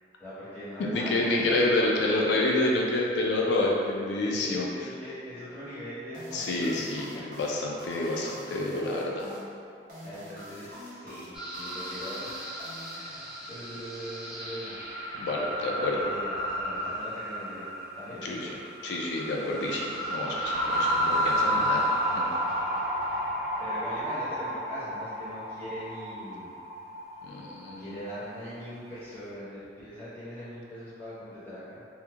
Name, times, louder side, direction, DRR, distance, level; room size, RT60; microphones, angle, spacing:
voice 1, 0.2-1.6 4.2-7.2 8.6-8.8 10.0-12.5 12.9-14.8 15.6-17.7 17.9-18.5 23.6-26.5 27.8-31.8, equal, 10° left, -12 dB, 0.7 m, -41 dB
voice 2, 0.9-4.7 6.3-9.3 15.1-16.0 18.2-18.5 18.8-21.8 22.1-22.3 27.2-28.0, left 2 dB, 80° left, -2 dB, 0.3 m, -28 dB
sound 1, 6.1-13.5, equal, 50° right, 0.7 m, -45 dB
sound 2, 11.3-28.2, equal, 5° right, 0.3 m, -33 dB
sound 3, 20.5-24.1, left 1 dB, 85° right, 0.3 m, -31 dB
2.9 x 2.1 x 2.3 m, 2.4 s
head